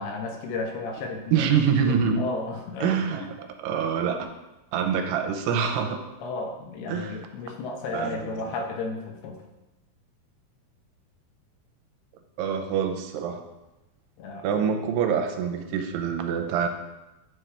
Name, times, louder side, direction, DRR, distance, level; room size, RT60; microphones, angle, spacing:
voice 1, 0.0-1.5 2.2-3.3 6.2-9.4 14.2-14.5, left 3 dB, 75° left, 2 dB, 2.8 m, -33 dB
voice 2, 1.3-2.2 2.8-4.3 4.7-6.0 6.9-7.2 7.9-8.3 12.4-13.4 14.4-16.7, right 7 dB, 90° right, 5 dB, 2.7 m, -25 dB
10.5 x 5.0 x 3.3 m, 1.0 s
omnidirectional pair, 4.7 m